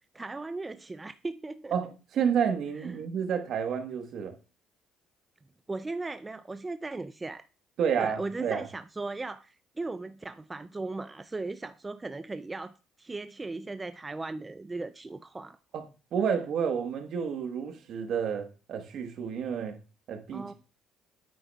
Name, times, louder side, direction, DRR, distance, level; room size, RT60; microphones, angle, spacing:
voice 1, 0.1-1.7 2.8-3.0 5.7-7.4 8.0-15.6 20.3-20.5, right 3 dB, 20° right, 0.3 m, -37 dB
voice 2, 1.7-4.3 7.8-8.6 15.7-15.8 16.1-19.8 20.1-20.5, right 7 dB, 60° right, 1.2 m, -30 dB
9.2 x 8.1 x 2.3 m
cardioid pair, 100°, 0 cm